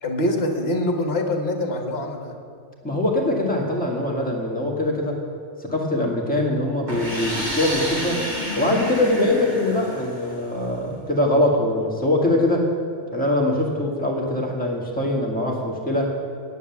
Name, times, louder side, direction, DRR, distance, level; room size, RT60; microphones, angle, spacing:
voice 1, 0.0-2.3, left 1 dB, 55° left, 4 dB, 1.6 m, -24 dB
voice 2, 2.8-5.2 5.6-8.2 8.6-12.7 13.1-16.1, left 1 dB, 5° left, -2 dB, 1.9 m, -22 dB
sound 1, 6.9-10.6, equal, 35° right, 2.5 m, -30 dB
10.0 x 9.3 x 7.2 m, 2.5 s
omnidirectional pair, 1.3 m